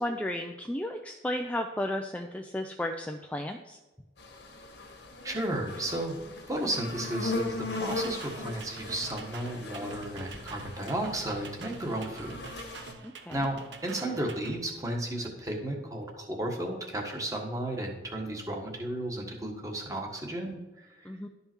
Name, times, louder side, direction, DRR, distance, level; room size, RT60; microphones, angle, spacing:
voice 1, 0.0-3.8 13.0-13.4 21.0-21.3, left 1 dB, 10° left, 3 dB, 0.4 m, -34 dB
sound 1, 4.2-12.9, left 2 dB, 75° left, 1.6 m, -39 dB
voice 2, 5.2-6.2 6.5-12.4 13.3-13.6 13.8-21.3, right 1 dB, 20° right, 1 dB, 1.4 m, -34 dB
sound 2, 7.7-14.6, right 4 dB, 80° right, 0.8 m, -47 dB
12.0 x 5.5 x 4.5 m, 1.1 s
head